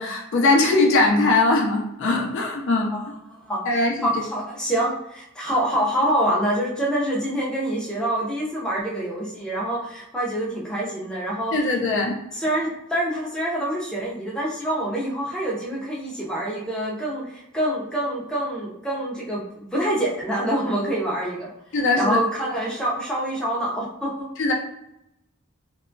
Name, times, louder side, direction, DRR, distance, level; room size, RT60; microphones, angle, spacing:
voice 1, 0.0-2.9 3.7-4.1 11.5-12.1 21.7-22.2 24.4-24.5, left 2 dB, 60° left, 0 dB, 0.5 m, -20 dB
voice 2, 2.9-3.6 4.0-11.5 12.3-21.5 22.0-24.3, right 1 dB, 5° left, -5 dB, 0.5 m, -26 dB
2.9 x 2.2 x 2.5 m, 0.84 s
head